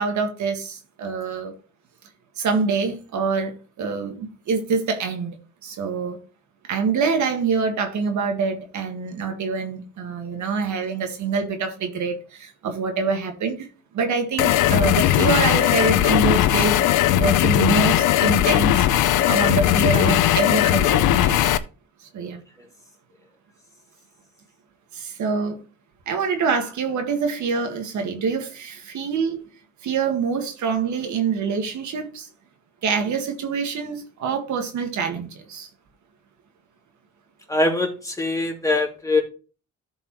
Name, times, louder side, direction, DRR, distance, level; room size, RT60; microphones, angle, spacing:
voice 1, 0.0-1.5 2.4-3.5 3.8-5.3 5.6-6.2 6.7-13.7 13.9-21.5 22.1-22.4 24.9-25.6 26.1-29.4 29.8-32.3 32.8-35.7, right 5 dB, 70° right, 1.8 m, -25 dB
sound 1, 14.4-21.6, left 13 dB, 90° left, 0.7 m, -18 dB
voice 2, 37.5-39.2, left 2 dB, 10° left, 2.9 m, -22 dB
13.5 x 5.3 x 3.0 m
cardioid pair, 90°, 30 cm